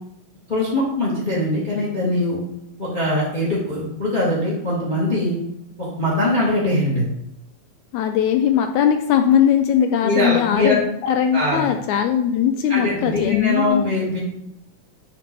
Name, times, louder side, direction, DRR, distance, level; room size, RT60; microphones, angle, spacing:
voice 1, 0.5-2.4 2.8-5.4 5.8-7.0 10.0-10.8 11.3-11.6 12.7-14.2, left 1 dB, 15° left, -5 dB, 1.7 m, -22 dB
voice 2, 7.9-13.8, left 9 dB, 85° left, 5 dB, 1.7 m, -19 dB
6.7 x 4.4 x 5.3 m, 0.79 s
omnidirectional pair, 3.8 m